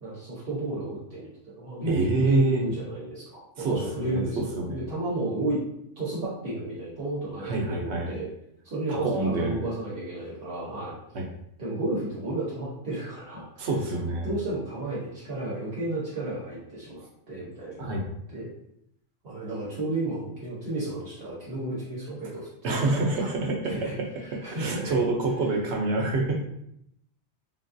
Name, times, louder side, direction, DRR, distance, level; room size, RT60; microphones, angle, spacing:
voice 1, 0.0-5.6 6.0-8.3 8.6-11.0 11.6-13.7 14.2-18.0 18.3-18.5 19.2-23.3 23.6-24.0 24.4-25.0, right 2 dB, 60° right, -7 dB, 1.0 m, -32 dB
voice 2, 1.9-2.6 3.6-4.9 7.4-8.2 8.9-9.6 11.1-11.2 13.6-14.3 17.8-18.0 22.6-24.1 24.5-26.3, right 2 dB, 85° right, 1 dB, 1.0 m, -27 dB
3.6 x 2.3 x 2.5 m, 0.75 s
omnidirectional pair, 1.1 m